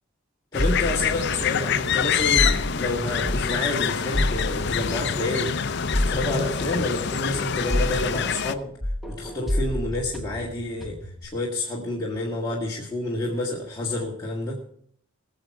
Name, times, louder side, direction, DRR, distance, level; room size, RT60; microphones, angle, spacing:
sound 1, 0.5-8.5, left 7 dB, 50° left, 0.6 m, -26 dB
voice 1, 0.5-5.7 6.0-8.7 9.1-14.6, left 2 dB, 20° left, -5 dB, 1.9 m, -29 dB
sound 2, 0.6-3.7 4.1-8.5 8.8-11.2, left 1 dB, ahead, 1.1 m, -30 dB
20.5 x 7.4 x 4.8 m, 0.64 s
head